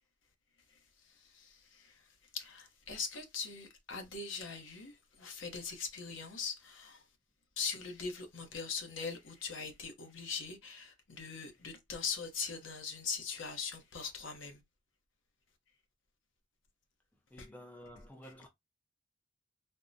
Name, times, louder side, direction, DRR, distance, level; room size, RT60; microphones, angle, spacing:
voice 1, 1.3-1.9 2.3-7.0 7.6-14.6 17.4-17.5 18.2-18.3, left 5 dB, 75° left, 0.8 m, -41 dB
voice 2, 17.3-18.5, equal, 10° left, 0.4 m, -51 dB
3.5 x 2.1 x 2.6 m
head